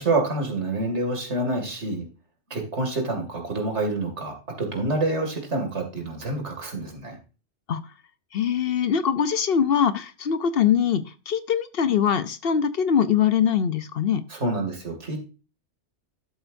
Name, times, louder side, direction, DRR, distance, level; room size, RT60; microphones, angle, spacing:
voice 1, 0.0-2.1 2.5-7.2 14.3-15.2, right 2 dB, 75° right, 2 dB, 2.7 m, -27 dB
voice 2, 8.3-14.2, left 8 dB, 60° left, 13 dB, 0.8 m, -22 dB
12.0 x 7.8 x 2.6 m, 0.34 s
omnidirectional pair, 1.2 m